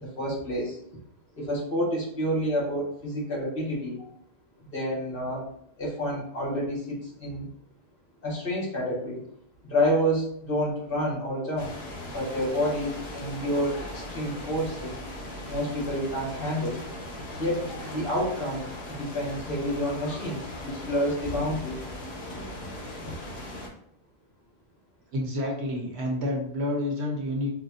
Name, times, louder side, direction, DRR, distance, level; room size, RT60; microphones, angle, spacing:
voice 1, 0.2-0.8 1.4-4.1 4.7-5.5 5.8-7.5 8.2-9.2 9.7-11.7 12.1-14.9 15.5-16.8 17.4-18.6 19.0-21.7 22.3-22.7, equal, 60° left, -4 dB, 1.5 m, -29 dB
sound 1, 11.6-23.7, left 1 dB, 80° left, 1.1 m, -38 dB
voice 2, 25.1-27.5, left 1 dB, 90° right, 0 dB, 1.2 m, -29 dB
4.7 x 2.1 x 2.7 m, 0.70 s
omnidirectional pair, 1.1 m